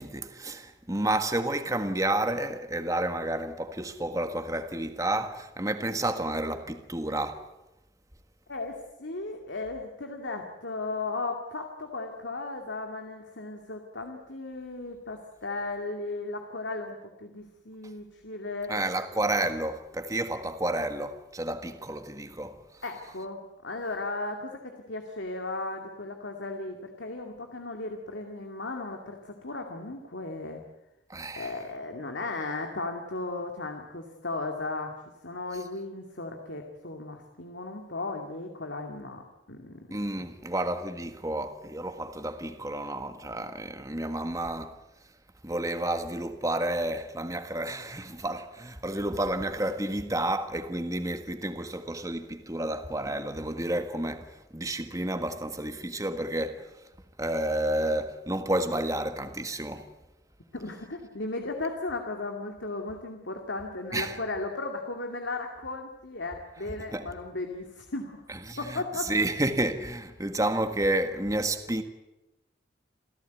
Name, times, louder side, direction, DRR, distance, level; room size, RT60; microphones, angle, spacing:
voice 1, 0.0-7.4 18.7-22.8 31.1-31.6 35.5-35.6 39.9-45.1 45.4-56.9 57.2-59.9 63.9-64.2 66.9-67.1 68.3-71.8, right 1 dB, 15° right, 1.5 m, -31 dB
voice 2, 8.5-18.7 22.8-30.6 31.4-34.9 35.2-39.2 39.5-39.9 60.5-68.2 68.6-69.2, left 2 dB, 75° left, 2.4 m, -36 dB
28.5 x 15.5 x 9.3 m
head